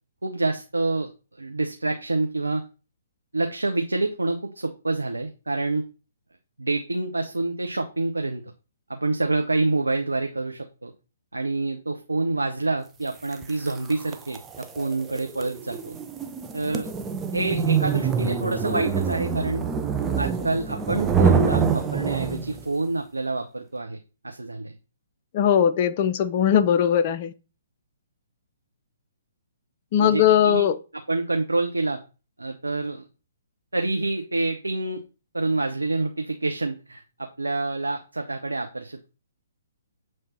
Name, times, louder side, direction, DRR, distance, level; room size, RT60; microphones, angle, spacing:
voice 1, 0.2-1.1 1.4-2.6 3.3-5.8 6.6-8.4 8.9-10.9 11.3-16.0 16.5-16.9 17.3-19.6 20.2-24.0 24.2-24.7 30.0-30.7 31.1-32.0 32.4-33.1 33.7-35.0 35.3-39.1, right 2 dB, 80° right, 0.7 m, -27 dB
sound 1, 13.3-22.7, right 6 dB, 15° right, 0.5 m, -25 dB
voice 2, 25.3-27.3 29.9-30.7, left 9 dB, 40° left, 0.6 m, -20 dB
7.2 x 3.2 x 4.3 m
figure-of-eight pair, 125°, 0 cm